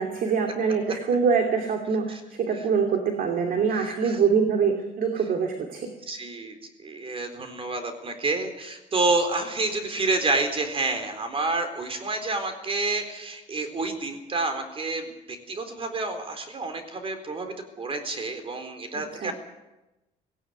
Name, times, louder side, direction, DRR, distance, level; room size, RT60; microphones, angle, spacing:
voice 1, 0.0-5.9 18.9-19.3, right 6 dB, 55° right, 4 dB, 2.8 m, -24 dB
voice 2, 3.7-4.2 6.1-19.3, right 3 dB, 35° right, 8 dB, 4.1 m, -29 dB
17.5 x 17.5 x 9.5 m, 1.0 s
cardioid pair, 110°, 17 cm